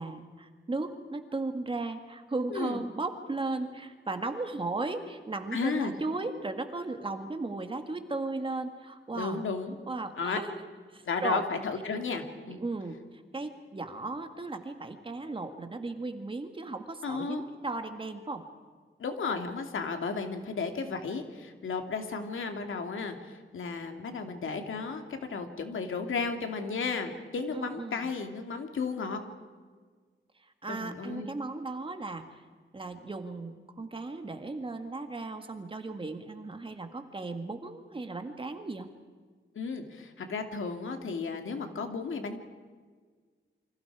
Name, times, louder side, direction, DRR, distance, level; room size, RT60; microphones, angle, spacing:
voice 1, 0.0-9.4 9.9-10.7 10.9-11.4 12.5-18.4 27.5-28.1 30.6-32.2 32.7-38.9, right 3 dB, 25° right, 7 dB, 1.8 m, -36 dB
voice 2, 2.5-2.8 5.5-6.0 9.1-9.8 10.2-10.4 11.0-12.6 17.0-17.4 19.0-29.2 30.7-31.3 39.5-42.4, left 4 dB, 80° left, 5 dB, 2.6 m, -34 dB
28.5 x 25.5 x 4.9 m, 1.5 s
wide cardioid pair, 180°, 20 cm